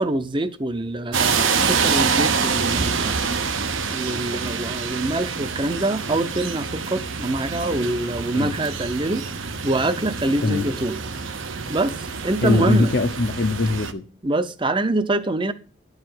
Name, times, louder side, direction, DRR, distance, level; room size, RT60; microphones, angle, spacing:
voice 1, 0.0-3.3 3.9-11.0 11.7-12.9 14.2-15.5, right 2 dB, 25° right, 0.6 m, -25 dB
sound 1, 1.1-13.9, right 5 dB, 75° right, 1.0 m, -26 dB
voice 2, 12.4-14.0, left 2 dB, 50° left, 0.7 m, -21 dB
11.0 x 4.9 x 7.7 m
head